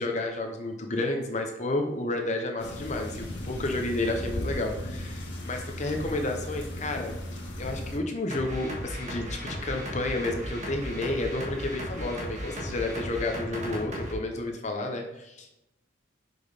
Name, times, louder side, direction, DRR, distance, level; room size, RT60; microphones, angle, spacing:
voice 1, 0.0-15.5, left 2 dB, 35° left, 3 dB, 0.7 m, -31 dB
sound 1, 2.6-8.0, left 1 dB, 65° left, 1.6 m, -36 dB
sound 2, 8.3-14.1, equal, 35° right, 1.5 m, -36 dB
6.0 x 5.3 x 4.9 m, 0.89 s
head